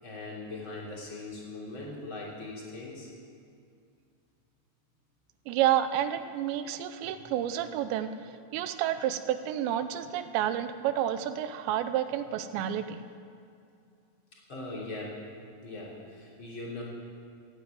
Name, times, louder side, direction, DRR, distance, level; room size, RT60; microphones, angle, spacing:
voice 1, 0.0-3.1 14.5-15.2 15.6-16.8, left 2 dB, 30° left, -4 dB, 3.3 m, -40 dB
voice 2, 5.5-8.1 8.5-13.0, right 11 dB, 80° right, 11 dB, 2.8 m, -30 dB
15.0 x 9.5 x 9.3 m, 2.3 s
omnidirectional pair, 5.2 m